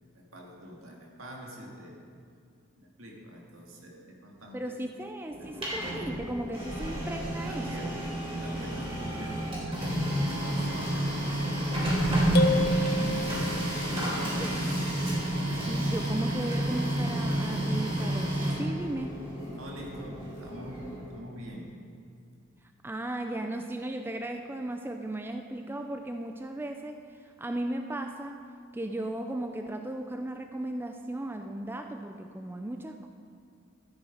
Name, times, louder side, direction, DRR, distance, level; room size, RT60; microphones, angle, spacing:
voice 1, 0.1-2.0 2.8-4.6 5.3-5.7 6.8-7.0 7.4-8.0 8.4-9.8 10.3-11.6 13.8-14.8 19.4-21.7, equal, 80° right, -1 dB, 2.0 m, -44 dB
voice 2, 4.5-7.9 14.2-14.6 15.7-19.1 22.8-27.0 27.4-28.4 28.7-33.1, right 1 dB, 10° right, 5 dB, 0.3 m, -36 dB
Printer, 5.3-21.1, right 1 dB, 25° right, 3.4 m, -30 dB
sound 1, 12.4-13.9, left 2 dB, 50° left, 0.8 m, -30 dB
13.0 x 9.0 x 4.8 m, 2.3 s
head